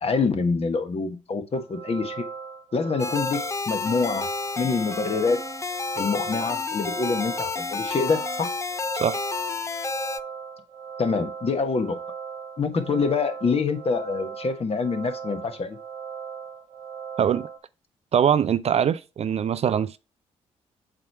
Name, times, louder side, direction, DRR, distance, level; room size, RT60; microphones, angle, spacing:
voice 1, 0.0-2.3 2.7-4.3 4.6-5.4 5.9-8.5 11.0-12.0 12.6-15.8, left 4 dB, 40° left, 1.2 m, -26 dB
sound 1, 1.5-17.6, right 6 dB, 75° right, 1.4 m, -38 dB
sound 2, 3.0-10.2, left 4 dB, 20° left, 0.5 m, -30 dB
voice 2, 17.2-17.5 18.1-20.0, right 8 dB, 45° right, 0.4 m, -22 dB
7.6 x 3.2 x 4.5 m
hypercardioid pair, 45°, 16 cm